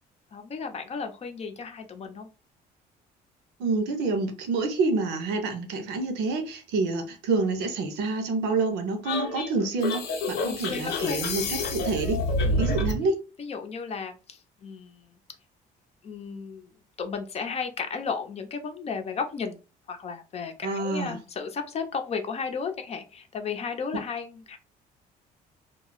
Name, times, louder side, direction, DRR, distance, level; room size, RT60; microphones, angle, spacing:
voice 1, 0.3-2.3 10.4-11.2 12.4-12.7 13.4-15.0 16.0-16.7 17.0-19.6 19.9-24.6, left 5 dB, 40° left, 0.6 m, -34 dB
voice 2, 3.6-12.2 12.6-13.2 20.6-21.2, right 3 dB, 85° right, 0.7 m, -27 dB
sound 1, 9.0-13.0, left 2 dB, 80° left, 0.7 m, -28 dB
2.3 x 2.0 x 3.8 m
cardioid pair, 110°, 17 cm